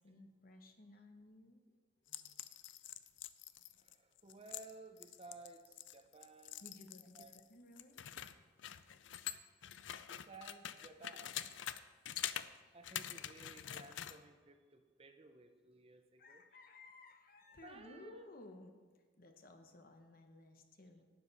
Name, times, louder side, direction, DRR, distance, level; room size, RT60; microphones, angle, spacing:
voice 1, 0.0-1.6 2.1-2.3 6.6-8.1 16.2-21.0, left 2 dB, 50° left, 5 dB, 1.1 m, -58 dB
sound 1, 2.1-7.4 7.8-11.8 12.0-12.5 12.8-14.2, left 11 dB, 75° left, 0.5 m, -46 dB
voice 2, 3.8-6.6 7.1-7.4 9.8-11.4 12.7-16.4 17.6-18.3, right 3 dB, 30° right, 7 dB, 0.7 m, -57 dB
12.5 x 9.4 x 4.1 m, 1.5 s
head